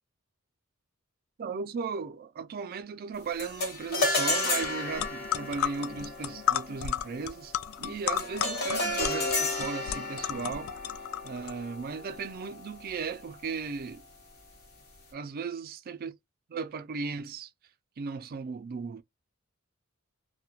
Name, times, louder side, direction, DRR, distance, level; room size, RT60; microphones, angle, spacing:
voice 1, 1.4-7.5 7.8-10.7 11.2-14.0 15.1-16.1 16.5-17.5 18.0-19.0, right 5 dB, 45° right, 0.4 m, -36 dB
sound 1, 3.4-12.9, left 2 dB, 50° left, 1.1 m, -33 dB
sound 2, 4.6-4.7 5.0-11.5, left 10 dB, 75° left, 0.3 m, -32 dB
2.3 x 2.1 x 2.8 m
head